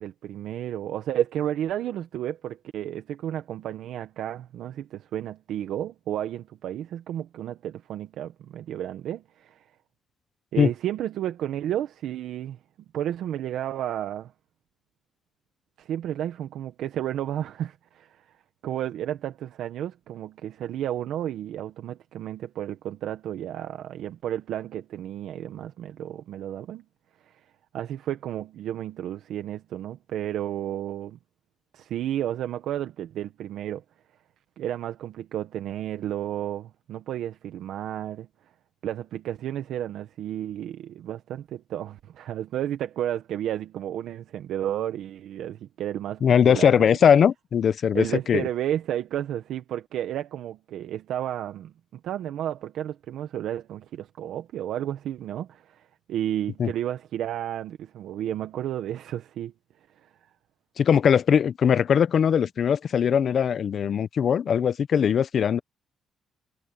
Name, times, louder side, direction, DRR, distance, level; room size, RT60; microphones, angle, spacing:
voice 1, 0.0-9.6 10.5-12.6 12.9-14.3 15.8-18.3 18.6-26.8 27.2-27.4 27.7-31.2 31.7-33.8 34.6-38.3 38.8-46.9 47.9-59.5, right 11 dB, 80° right, 1.3 m, -32 dB
voice 2, 46.2-48.5 56.6-56.7 60.8-65.6, left 8 dB, 55° left, 0.8 m, -20 dB
cardioid pair, 90°, 0 cm